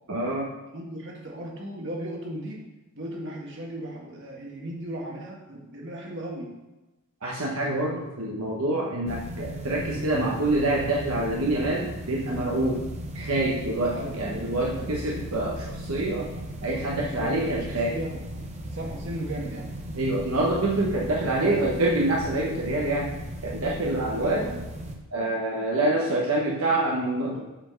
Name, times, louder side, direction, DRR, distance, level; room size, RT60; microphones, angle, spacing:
voice 1, 0.1-0.5 7.2-12.8 13.1-16.3 16.6-18.0 19.9-23.1 23.4-24.5 25.1-27.4, right 2 dB, 75° right, -3 dB, 1.1 m, -26 dB
voice 2, 0.7-2.6 3.0-6.5 9.8-10.0 13.9-15.2 17.1-18.2 18.7-19.7 21.4-21.7 24.2-24.6 26.1-26.3 27.3-27.4, right 1 dB, 55° right, -3 dB, 1.9 m, -36 dB
sound 1, 9.1-25.0, right 1 dB, 30° right, 0.9 m, -37 dB
7.6 x 4.4 x 6.5 m, 1.1 s
head